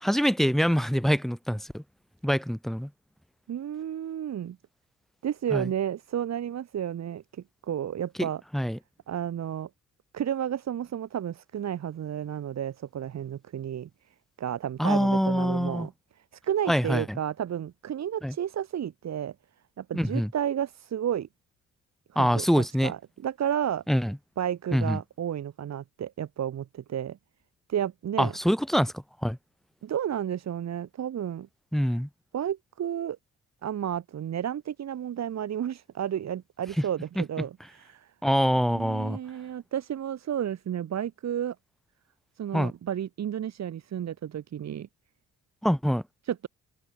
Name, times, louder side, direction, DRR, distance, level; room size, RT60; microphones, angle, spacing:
voice 1, 0.0-1.8 2.2-2.9 5.5-5.7 8.2-8.8 14.8-15.9 16.7-17.2 18.2-18.3 19.9-20.3 22.2-22.9 23.9-24.2 24.7-25.0 28.2-29.4 31.7-32.1 38.2-39.2 42.5-42.7 45.6-46.0, equal, ahead, 1.9 m, -25 dB
voice 2, 3.5-4.6 5.2-8.4 9.1-9.7 10.1-13.9 14.4-15.9 16.4-19.4 19.8-21.3 22.1-23.8 24.4-27.2 27.7-28.3 29.8-31.5 32.3-33.2 33.6-38.1 38.7-41.6 42.4-44.9 46.2-46.5, right 10 dB, 60° right, 3.7 m, -32 dB
open air
cardioid pair, 90°, 30 cm